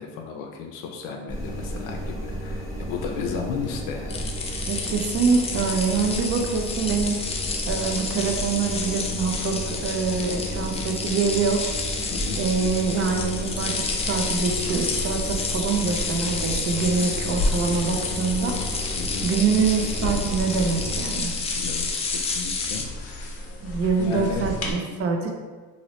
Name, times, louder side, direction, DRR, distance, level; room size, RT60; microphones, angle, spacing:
voice 1, 0.0-4.7 5.3-5.4 5.6-5.7 10.5-10.9 12.1-12.4 19.0-19.3 21.5-23.5 24.0-24.5, left 6 dB, 75° left, 2 dB, 0.5 m, -34 dB
sound 1, 1.3-21.1, right 1 dB, 15° right, 1.3 m, -33 dB
sound 2, 4.1-22.8, left 4 dB, 20° left, 0.3 m, -30 dB
voice 2, 4.7-7.2 7.7-11.6 12.4-18.6 19.2-21.4 23.6-25.4, right 5 dB, 40° right, 3 dB, 0.6 m, -25 dB
sound 3, 12.4-24.7, left 2 dB, 45° left, 0.8 m, -34 dB
3.0 x 2.6 x 2.9 m, 1.4 s
supercardioid pair, 100°, 34 cm